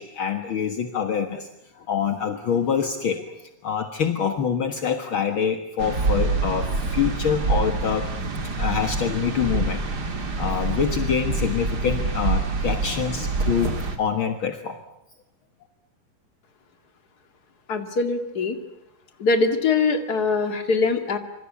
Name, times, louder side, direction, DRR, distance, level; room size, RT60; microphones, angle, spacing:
voice 1, 0.0-1.5 1.8-3.2 3.6-8.1 8.6-9.8 10.4-14.8, left 7 dB, 55° left, 6 dB, 1.4 m, -25 dB
sound 1, 5.8-14.0, right 3 dB, 30° right, 2.2 m, -26 dB
voice 2, 17.7-18.6 19.2-21.2, left 4 dB, 30° left, 7 dB, 1.9 m, -22 dB
26.5 x 25.5 x 8.6 m, 0.82 s
omnidirectional pair, 4.5 m